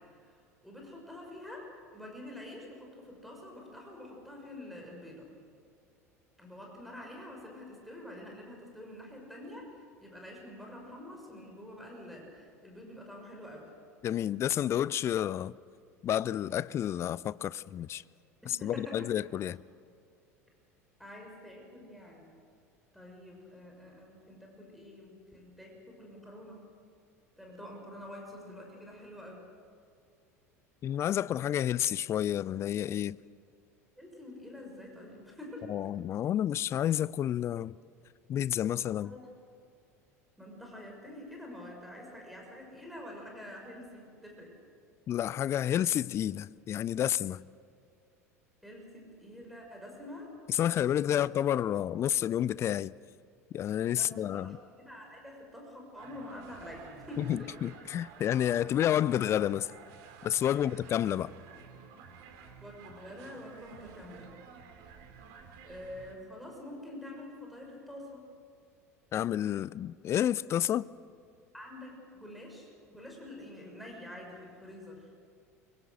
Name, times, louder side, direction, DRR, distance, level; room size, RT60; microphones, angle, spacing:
voice 1, 0.6-5.2 6.4-13.7 18.4-19.1 21.0-22.3 22.9-26.6 27.4-29.4 34.0-35.8 39.0-39.3 40.4-44.5 48.6-50.3 53.9-57.5 60.5-60.7 62.6-64.4 65.6-68.3 71.5-75.1, left 1 dB, ahead, 6.3 m, -47 dB
voice 2, 14.0-15.5 16.0-18.0 18.5-19.6 30.8-33.2 35.7-37.8 38.3-39.1 45.1-47.5 50.5-52.9 53.5-54.6 57.2-59.7 60.2-61.3 69.1-70.9, left 11 dB, 35° left, 0.5 m, -30 dB
sound 1, 56.0-66.1, right 6 dB, 50° right, 3.1 m, -52 dB
25.0 x 23.5 x 6.6 m
figure-of-eight pair, 70°, 8 cm